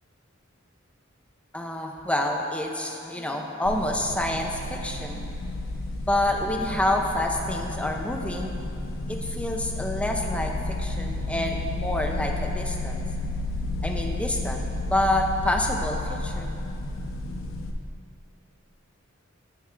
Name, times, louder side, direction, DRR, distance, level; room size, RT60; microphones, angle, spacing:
voice 1, 1.5-5.3 6.1-8.6 9.1-13.0 13.8-16.6, left 1 dB, 5° left, 1 dB, 0.6 m, -28 dB
sound 1, 3.7-17.7, left 2 dB, 80° left, 0.7 m, -32 dB
8.4 x 7.4 x 3.7 m, 2.6 s
head